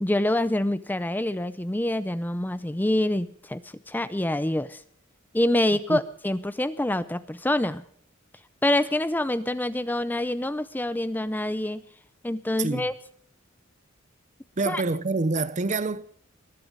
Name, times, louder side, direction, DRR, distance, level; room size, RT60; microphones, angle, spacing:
voice 1, 0.0-3.6 3.9-4.8 5.3-7.8 8.6-11.8 12.2-12.9 14.7-14.8, left 1 dB, 10° left, 0.5 m, -26 dB
voice 2, 14.6-16.0, right 3 dB, 35° right, 0.7 m, -26 dB
20.5 x 11.5 x 5.3 m
head